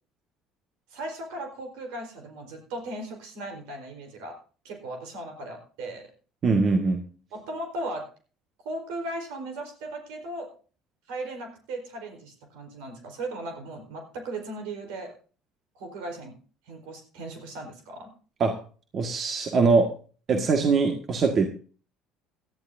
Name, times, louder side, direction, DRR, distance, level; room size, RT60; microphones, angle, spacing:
voice 1, 0.9-4.3 4.6-6.1 7.3-8.0 8.6-10.5 11.1-15.1 15.7-16.3 16.7-18.1, right 1 dB, 80° right, 4 dB, 4.2 m, -37 dB
voice 2, 6.4-7.0 18.4-18.6 18.9-19.9 20.3-21.5, right 4 dB, 45° right, 4 dB, 1.7 m, -22 dB
17.5 x 12.0 x 2.7 m, 0.40 s
hypercardioid pair, 75°, 0 cm